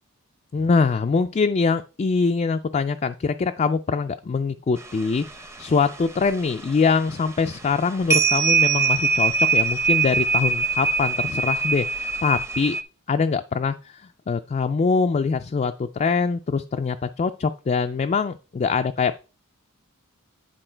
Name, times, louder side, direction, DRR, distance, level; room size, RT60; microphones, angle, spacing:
voice 1, 0.5-12.8 13.1-14.0 14.3-19.2, left 5 dB, 30° left, 7 dB, 0.3 m, -23 dB
sound 1, 4.8-5.6 5.9-6.3 6.6-6.8 7.5-7.8 8.1-12.8, right 5 dB, 15° right, 0.6 m, -22 dB
10.0 x 4.5 x 4.4 m, 0.34 s
head